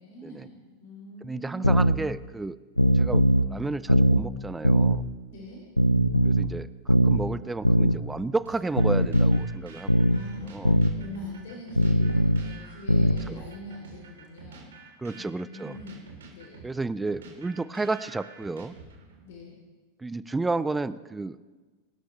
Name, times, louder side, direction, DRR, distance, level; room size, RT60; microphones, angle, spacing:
voice 1, 0.0-2.0 5.3-5.6 10.1-14.7 15.2-16.6 19.2-19.6, left 2 dB, 55° left, -2 dB, 3.0 m, -43 dB
voice 2, 1.2-2.6 2.9-5.0 6.2-6.7 7.0-10.1 10.5-10.8 13.3-13.4 15.0-15.8 16.6-18.8 20.0-21.4, right 3 dB, 10° right, 17 dB, 0.4 m, -32 dB
sound 1, 1.6-2.0 2.8-3.5 3.9-4.2 4.6-5.0 5.8-6.5 6.9-7.2 7.7-8.0 8.8-9.5 9.9-10.2 10.7-10.9 11.8-12.5 12.9-13.2, equal, 90° left, 0.6 m, -20 dB
sound 2, 8.5-19.2, right 5 dB, 60° right, 3.4 m, -48 dB
24.5 x 12.5 x 3.2 m, 1.3 s
figure-of-eight pair, 90°, 0 cm